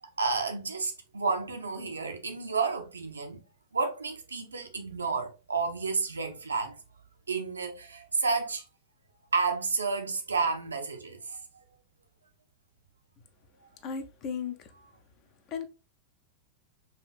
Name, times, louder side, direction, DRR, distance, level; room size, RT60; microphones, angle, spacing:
voice 1, 0.0-3.4 3.7-6.8 7.3-8.6 9.3-11.6, right 4 dB, 75° right, 0.7 m, -31 dB
voice 2, 13.8-14.7 15.5-15.7, left 6 dB, 35° left, 0.7 m, -35 dB
5.1 x 2.6 x 2.4 m
figure-of-eight pair, 90°, 0 cm